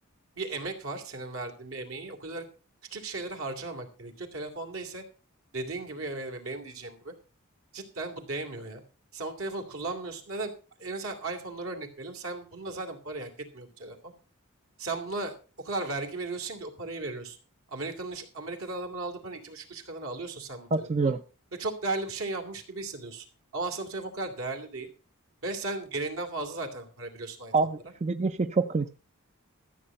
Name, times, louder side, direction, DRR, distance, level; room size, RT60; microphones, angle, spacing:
voice 1, 0.4-2.4 2.9-5.0 5.5-7.1 7.7-8.8 9.1-10.5 10.8-14.1 14.8-15.3 15.6-17.4 17.7-21.1 21.6-23.3 23.5-24.9 25.4-27.5, right 2 dB, 70° right, 4 dB, 2.6 m, -36 dB
voice 2, 20.7-21.2 27.5-28.9, right 4 dB, 30° right, 10 dB, 0.5 m, -26 dB
14.0 x 7.6 x 5.5 m, 0.36 s
head